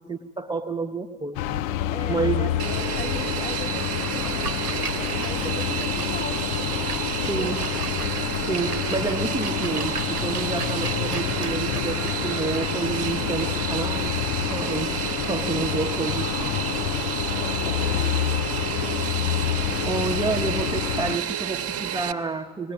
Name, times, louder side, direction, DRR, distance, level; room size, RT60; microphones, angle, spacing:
voice 1, 0.1-1.4 2.1-2.5 7.3-7.7 8.5-16.5 19.8-22.7, right 4 dB, 10° right, 3 dB, 0.9 m, -29 dB
sound 1, 1.3-21.2, left 13 dB, 50° left, 0.6 m, -28 dB
voice 2, 1.9-6.6 7.2-7.6 17.3-18.8, left 1 dB, 15° left, 9 dB, 1.1 m, -39 dB
Fixed-wing aircraft airplane, 2.6-22.1, right 9 dB, 30° right, 1.1 m, -30 dB
Splash splatter, 4.2-14.1, right 4 dB, 90° right, 0.8 m, -38 dB
19.0 x 18.5 x 8.7 m, 1.5 s
figure-of-eight pair, 60°, 44 cm